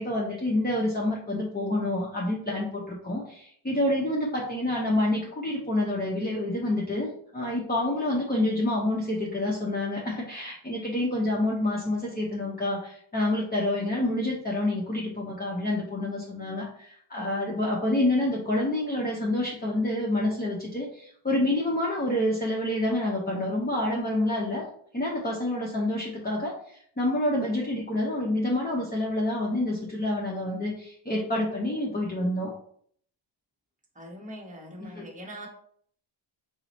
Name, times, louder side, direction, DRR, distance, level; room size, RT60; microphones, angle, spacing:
voice 1, 0.0-24.7 24.9-32.5 34.9-35.0, left 1 dB, 20° left, -4 dB, 0.7 m, -28 dB
voice 2, 33.9-35.5, equal, 15° right, -2 dB, 1.0 m, -42 dB
4.5 x 2.1 x 4.0 m, 0.62 s
wide cardioid pair, 115°, 50 cm